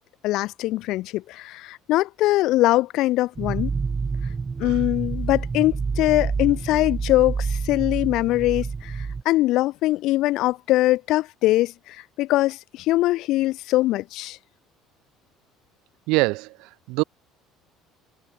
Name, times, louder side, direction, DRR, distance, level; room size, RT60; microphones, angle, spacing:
voice 1, 0.2-3.7 4.6-14.4, left 17 dB, 60° left, 6.9 m, -22 dB
sound 1, 3.4-9.2, right 5 dB, 20° right, 5.3 m, -28 dB
voice 2, 16.1-17.0, right 24 dB, 80° right, 2.9 m, -24 dB
cardioid pair, 160°, 0 cm